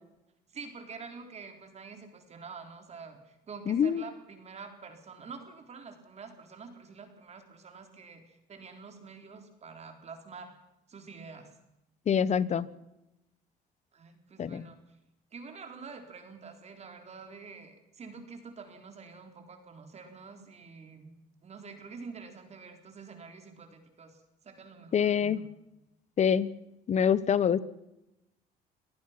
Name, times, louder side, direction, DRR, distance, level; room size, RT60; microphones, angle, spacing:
voice 1, 0.5-10.5 10.9-11.5 13.9-14.8 15.3-21.1 21.4-25.5, right 5 dB, 40° right, 6 dB, 3.8 m, -47 dB
voice 2, 3.7-4.0 12.1-12.7 14.4-14.7 24.9-25.4 26.2-26.5 26.9-27.6, left 8 dB, 45° left, 18 dB, 1.1 m, -25 dB
24.5 x 18.0 x 5.9 m, 0.90 s
cardioid pair, 110°, 17 cm